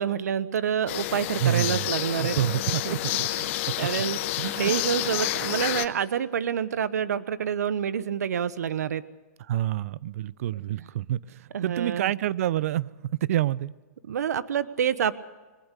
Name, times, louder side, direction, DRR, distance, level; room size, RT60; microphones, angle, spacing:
voice 1, 0.0-2.4 2.8-3.0 3.3-4.2 4.6-9.0 11.5-12.1 14.1-15.1, right 8 dB, 75° right, 16 dB, 1.1 m, -27 dB
sound 1, 0.9-5.9, left 16 dB, 45° left, 1.1 m, -29 dB
voice 2, 1.4-1.9 2.2-2.8 3.1-3.3 3.7-3.8 4.4-4.7 9.5-12.9 13.3-13.7, right 12 dB, 60° right, 21 dB, 0.7 m, -27 dB
22.5 x 20.5 x 6.8 m, 1.2 s
hypercardioid pair, 130°, 9 cm